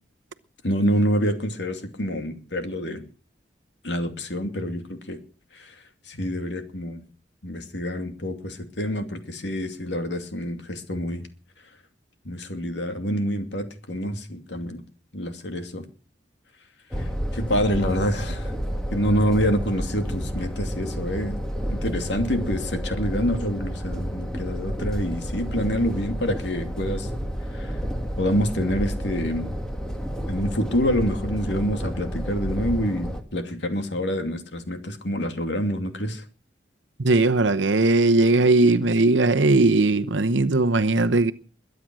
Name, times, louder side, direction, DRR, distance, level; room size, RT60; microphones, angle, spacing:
voice 1, 0.6-3.0 3.8-5.2 5.5-5.7 6.1-7.0 7.4-11.2 12.2-14.8 15.1-15.9 17.3-18.5 18.9-21.4 21.7-27.1 27.5-27.7 28.2-29.5 30.3-36.2, equal, 70° left, 2.6 m, -27 dB
sound 1, 16.9-33.2, equal, 5° left, 1.9 m, -30 dB
voice 2, 37.0-41.3, right 2 dB, 85° right, 0.9 m, -19 dB
22.0 x 9.4 x 6.2 m
head